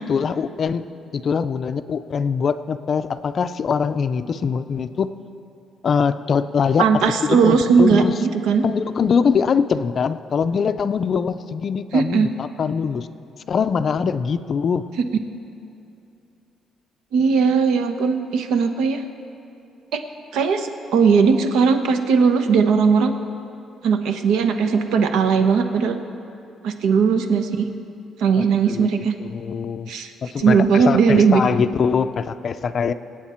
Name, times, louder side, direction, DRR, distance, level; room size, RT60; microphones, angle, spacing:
voice 1, 0.1-0.8 1.1-5.1 5.8-8.1 8.6-13.1 13.5-14.8 28.6-29.9 30.2-32.9, left 6 dB, 35° left, 11 dB, 0.4 m, -22 dB
voice 2, 6.8-8.6 11.9-12.3 15.0-15.1 17.1-19.0 19.9-20.0 20.3-23.1 23.8-26.0 26.6-27.7 28.2-29.1 29.9-30.1 30.4-31.4, right 5 dB, 85° right, 7 dB, 1.0 m, -18 dB
25.5 x 8.8 x 4.4 m, 2.7 s
cardioid pair, 175°, 0 cm